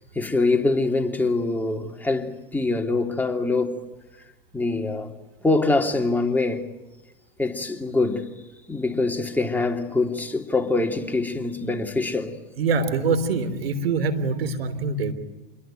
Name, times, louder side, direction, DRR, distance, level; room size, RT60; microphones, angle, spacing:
voice 1, 0.1-3.8 4.5-5.1 5.4-6.6 7.4-8.3 8.7-12.4, left 3 dB, 5° left, 3.0 m, -24 dB
voice 2, 12.6-15.1, right 4 dB, 85° right, 3.4 m, -24 dB
28.5 x 22.0 x 9.3 m
hypercardioid pair, 100°, 29 cm